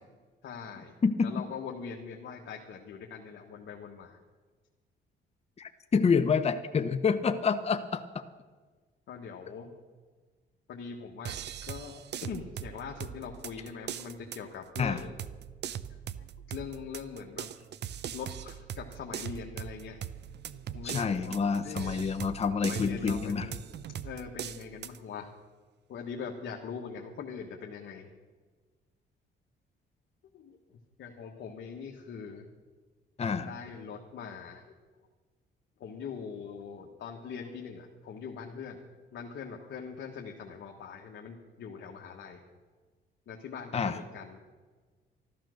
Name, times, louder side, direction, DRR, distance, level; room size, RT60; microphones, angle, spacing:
voice 1, 0.4-0.9 1.2-4.2 9.1-9.7 10.7-15.1 16.2-17.5 18.0-20.0 20.7-21.3 21.6-22.0 22.6-23.6 24.0-25.3 25.9-28.1 30.3-32.4 33.4-34.7 35.8-38.8 39.1-42.4 43.3-44.4, left 6 dB, 65° left, 0 dB, 1.5 m, -42 dB
voice 2, 5.6-8.2 14.8-15.0 20.8-23.5 33.2-33.5 43.7-44.0, left 5 dB, 30° left, 8 dB, 0.8 m, -28 dB
sound 1, 11.2-25.0, right 9 dB, 60° right, 0.6 m, -41 dB
13.0 x 12.0 x 6.4 m, 1.4 s
cardioid pair, 90°, 20 cm